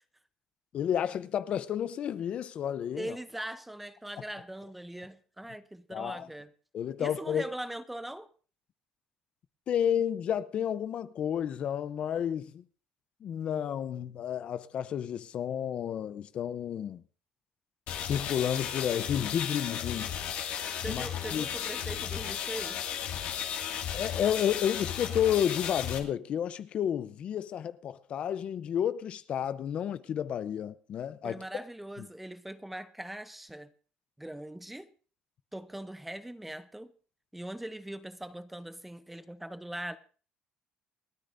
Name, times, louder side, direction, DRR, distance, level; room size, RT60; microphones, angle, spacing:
voice 1, 0.7-3.2 5.9-6.3 6.7-7.5 9.7-12.6 13.2-17.0 18.0-20.1 20.9-21.5 23.9-31.4 32.0-32.1, left 9 dB, 45° left, 0.6 m, -31 dB
voice 2, 3.0-6.5 7.0-8.3 20.8-22.9 31.2-33.7 34.2-34.9 35.5-36.9 37.3-40.0, right 1 dB, 5° right, 0.7 m, -41 dB
sound 1, 17.9-26.0, left 9 dB, 70° left, 2.1 m, -35 dB
29.0 x 10.0 x 2.6 m
cardioid pair, 140°, 3 cm